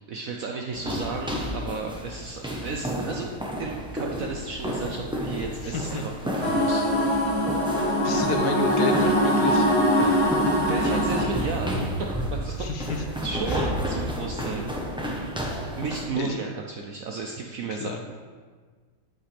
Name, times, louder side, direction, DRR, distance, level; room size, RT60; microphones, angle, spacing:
voice 1, 0.1-3.3 3.6-6.9 10.0-10.1 10.6-14.8 15.8-18.0, right 4 dB, 70° right, 2 dB, 0.8 m, -34 dB
sound 1, 0.7-16.1, equal, 5° right, 0.5 m, -31 dB
voice 2, 5.6-6.0 8.0-9.7 12.6-13.0 13.5-13.6 16.2-16.5 17.7-18.0, left 5 dB, 65° left, 4 dB, 1.0 m, -31 dB
sound 2, 6.4-11.2, equal, 15° left, 1.2 m, -22 dB
8.3 x 8.1 x 3.4 m, 1.5 s
omnidirectional pair, 2.0 m